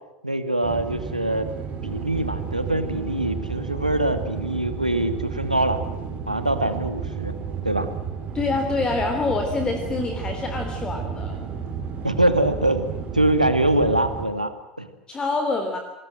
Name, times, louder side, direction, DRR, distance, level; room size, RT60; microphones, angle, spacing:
voice 1, 0.2-1.5 1.8-5.8 6.3-7.3 7.6-7.9 12.0-14.5 14.8-14.9, right 1 dB, 85° right, 10 dB, 2.2 m, -23 dB
sound 1, 0.6-14.3, right 6 dB, 35° right, 5.2 m, -32 dB
voice 2, 8.3-11.4 15.1-15.8, left 3 dB, 20° left, 5 dB, 3.5 m, -26 dB
27.0 x 20.5 x 7.8 m, 0.97 s
figure-of-eight pair, 80°, 4 cm